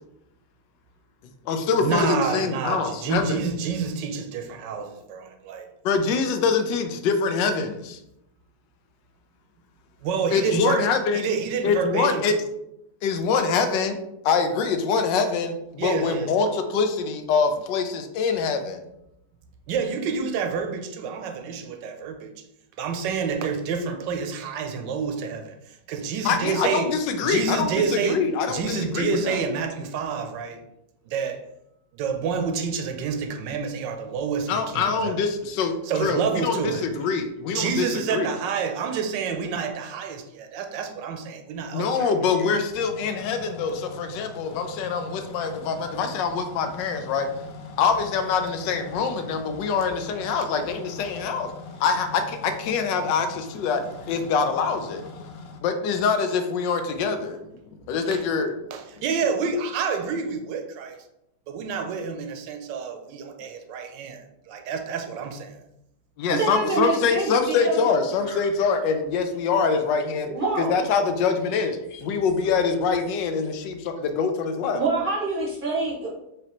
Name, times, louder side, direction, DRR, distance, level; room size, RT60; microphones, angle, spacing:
voice 1, 1.2-3.4 5.8-8.0 10.3-11.3 11.6-12.3 13.0-14.0 14.2-18.8 26.2-29.4 34.5-38.3 41.7-47.3 47.8-51.5 51.8-53.8 54.1-55.0 55.6-57.4 57.7-58.6 66.2-70.3 70.6-74.8, left 5 dB, 90° left, 1.3 m, -24 dB
voice 2, 1.8-5.7 10.0-10.9 11.1-12.2 15.8-16.3 19.7-22.3 22.8-26.9 27.2-30.6 31.1-31.5 31.9-35.2 35.9-36.9 37.5-42.1 58.1-58.2 58.7-61.0 61.5-65.6, right 5 dB, 85° right, 1.2 m, -28 dB
sound 1, 42.8-55.6, left 3 dB, 70° left, 0.9 m, -42 dB
voice 3, 66.3-67.8 68.3-68.4 70.3-70.7 74.7-76.1, right 3 dB, 45° right, 0.7 m, -26 dB
4.8 x 2.9 x 2.9 m
omnidirectional pair, 1.9 m